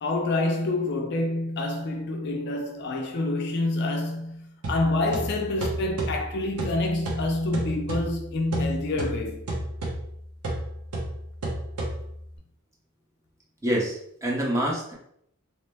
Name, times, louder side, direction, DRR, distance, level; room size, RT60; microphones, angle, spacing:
voice 1, 0.0-9.4, left 2 dB, 50° left, 0.4 m, -27 dB
sound 1, 4.6-12.4, right 1 dB, 85° right, 0.8 m, -33 dB
voice 2, 13.6-14.9, right 1 dB, 15° right, 0.6 m, -26 dB
2.9 x 2.1 x 3.3 m
head